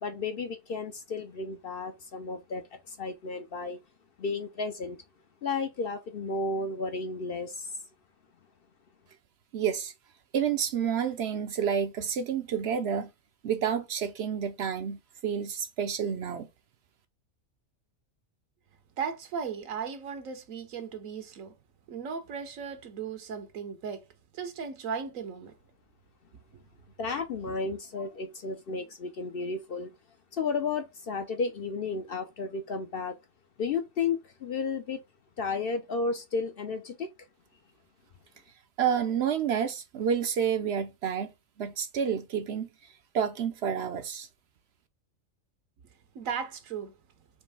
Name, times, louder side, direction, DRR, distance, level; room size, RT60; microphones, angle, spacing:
voice 1, 0.0-3.8 4.2-5.0 5.4-7.8 27.0-29.9 30.3-33.1 33.6-35.0 35.4-37.1, left 4 dB, 55° left, 0.7 m, -33 dB
voice 2, 9.5-9.9 10.3-13.1 13.4-16.5 38.8-44.3, right 7 dB, 65° right, 0.7 m, -29 dB
voice 3, 19.0-21.5 21.9-24.1 24.3-25.5 26.5-26.6 46.1-46.9, right 6 dB, 80° right, 1.2 m, -36 dB
4.4 x 3.1 x 3.4 m
omnidirectional pair, 1.4 m